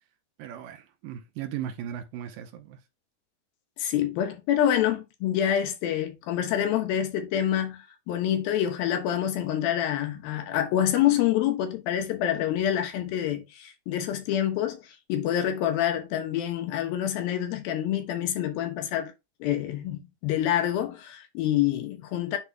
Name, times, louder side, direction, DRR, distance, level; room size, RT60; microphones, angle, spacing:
voice 1, 0.4-2.8, right 10 dB, 75° right, 2.3 m, -37 dB
voice 2, 3.8-19.1 19.4-22.4, left 11 dB, 80° left, 2.8 m, -27 dB
10.0 x 4.3 x 2.2 m
omnidirectional pair, 4.2 m